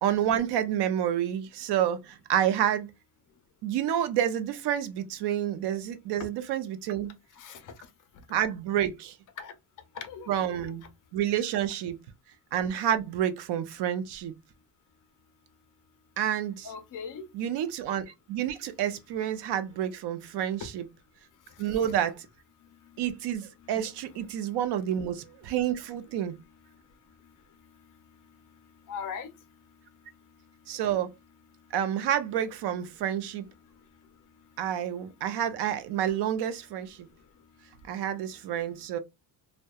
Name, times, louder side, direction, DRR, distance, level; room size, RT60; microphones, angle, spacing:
voice 1, 0.0-2.9 3.6-7.1 8.3-9.1 10.3-10.8 11.1-12.0 12.5-14.3 16.2-16.7 17.3-20.8 21.6-22.2 23.0-26.3 30.7-31.1 31.7-33.4 34.6-37.1 37.9-39.0, right 10 dB, 70° right, 0.5 m, -29 dB
voice 2, 7.4-7.7 9.4-9.5 10.0-10.7 16.6-17.2 20.6-20.7 21.8-21.9 28.9-29.3, left 6 dB, 50° left, 0.5 m, -39 dB
2.7 x 2.1 x 2.2 m
cardioid pair, 160°, 42 cm